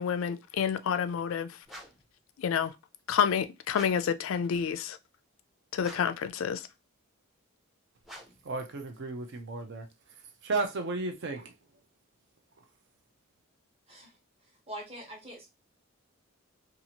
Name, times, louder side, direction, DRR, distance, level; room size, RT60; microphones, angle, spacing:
voice 1, 0.0-1.5 2.4-2.7 3.1-5.0 5.7-6.6, left 7 dB, 65° left, 0.3 m, -29 dB
sound 1, 1.7-2.1 3.7-4.2 5.8-6.3 8.0-8.5, equal, ahead, 0.5 m, -48 dB
voice 2, 8.4-9.9 10.4-11.5, right 3 dB, 55° right, 0.5 m, -33 dB
voice 3, 14.7-15.5, equal, 30° right, 0.9 m, -43 dB
2.8 x 2.4 x 2.8 m
head